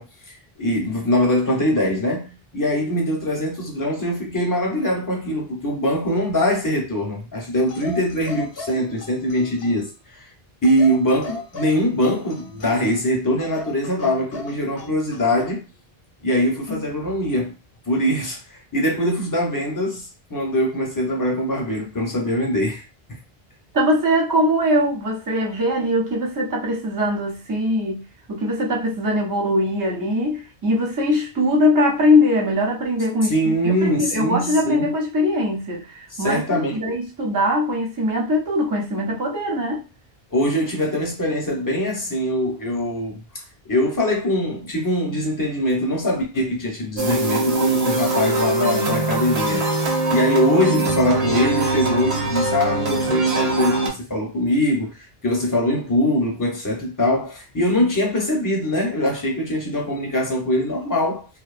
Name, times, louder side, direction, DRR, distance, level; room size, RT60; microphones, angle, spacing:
voice 1, 0.0-10.3 10.6-15.6 16.2-17.5 17.9-22.8 23.1-23.2 33.3-34.9 36.1-36.9 40.3-43.2 43.6-49.6 50.1-61.3, left 1 dB, 20° left, 0.7 m, -22 dB
sound 1, 7.7-9.9 10.6-13.0 13.4-15.6 16.7-16.9, left 3 dB, 70° left, 0.8 m, -37 dB
voice 2, 23.7-39.8, left 1 dB, 25° right, 0.5 m, -21 dB
sound 2, 47.0-53.9, right 2 dB, 85° right, 1.0 m, -22 dB
2.6 x 2.2 x 2.4 m
omnidirectional pair, 1.0 m